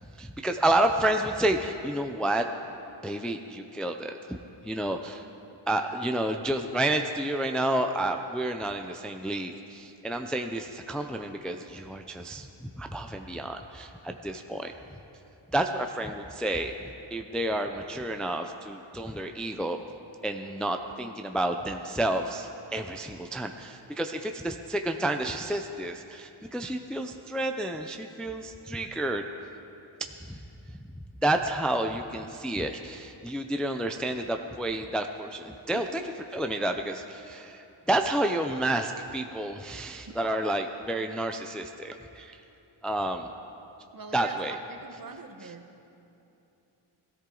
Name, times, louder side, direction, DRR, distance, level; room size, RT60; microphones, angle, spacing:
voice 1, 0.2-2.5 3.0-4.4 4.6-5.3 5.7-15.0 15.5-19.8 20.2-29.2 30.0-30.4 31.2-36.0 36.3-42.4 42.8-43.3 44.1-44.5, right 1 dB, ahead, 5 dB, 0.5 m, -30 dB
voice 2, 43.9-45.8, right 4 dB, 45° right, 4 dB, 1.2 m, -43 dB
21.5 x 13.5 x 3.9 m, 2.8 s
wide cardioid pair, 110°, 49 cm